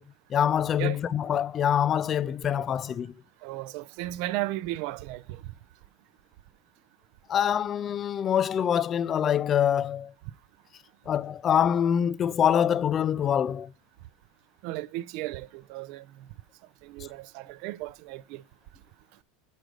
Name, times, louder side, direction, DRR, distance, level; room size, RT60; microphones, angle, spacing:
voice 1, 0.3-3.1 7.3-10.1 11.1-13.7, left 9 dB, 30° left, 0.4 m, -25 dB
voice 2, 3.4-5.4 14.6-16.1 16.8-18.4, right 16 dB, 60° right, 0.4 m, -35 dB
6.3 x 5.1 x 6.3 m
supercardioid pair, 140°, 0 cm